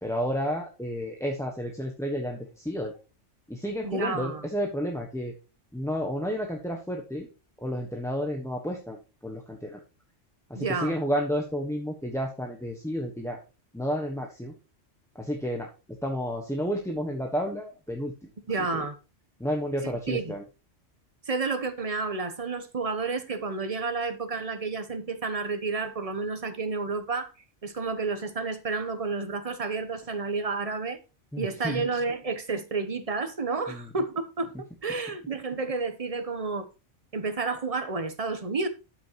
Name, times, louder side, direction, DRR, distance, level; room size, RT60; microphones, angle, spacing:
voice 1, 0.0-2.9 3.5-5.3 5.7-7.3 7.6-9.0 9.2-9.8 10.5-13.4 13.7-14.5 15.1-15.7 16.0-18.1 19.4-20.4 31.3-31.8 33.7-33.9, equal, 5° left, 1.2 m, -31 dB
voice 2, 3.8-4.4 10.5-11.0 18.5-19.0 19.8-20.3 21.3-27.3 27.6-31.0 31.4-36.7 37.1-38.7, right 4 dB, 30° right, 0.9 m, -30 dB
12.5 x 6.3 x 3.0 m
omnidirectional pair, 1.2 m